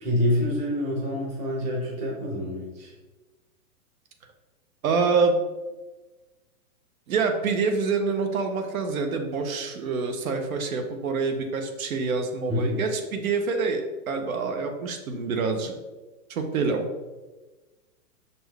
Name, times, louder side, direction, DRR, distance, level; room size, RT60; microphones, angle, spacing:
voice 1, 0.0-2.9 12.5-12.8, left 1 dB, 15° right, -3 dB, 0.8 m, -27 dB
voice 2, 4.8-5.4 7.1-15.7 16.3-16.9, right 4 dB, 65° right, 5 dB, 0.9 m, -26 dB
6.5 x 4.3 x 3.4 m, 1.2 s
hypercardioid pair, 165°, 45 cm